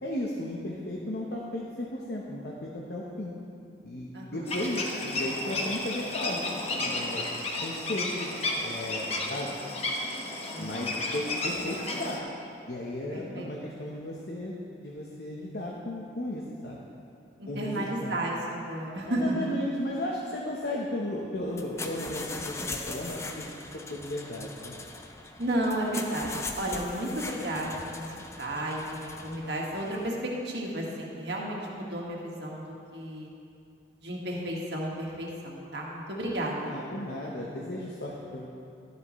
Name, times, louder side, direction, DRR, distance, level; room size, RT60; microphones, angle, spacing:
voice 1, 0.0-3.3 3.8-6.4 6.8-8.3 8.6-9.5 10.6-12.2 12.7-16.8 17.5-18.2 19.1-23.5 23.9-24.8 36.6-38.5, left 1 dB, 60° left, -3 dB, 1.0 m, -35 dB
sound 1, 4.5-12.2, left 2 dB, 35° left, 1.1 m, -32 dB
voice 2, 13.1-13.5 17.4-19.4 25.4-28.1 28.4-30.2 30.4-33.3 34.0-36.7, right 1 dB, 65° right, -2 dB, 1.8 m, -33 dB
sound 2, 21.5-30.1, left 3 dB, 15° left, 0.5 m, -40 dB
12.5 x 11.5 x 3.2 m, 2.6 s
head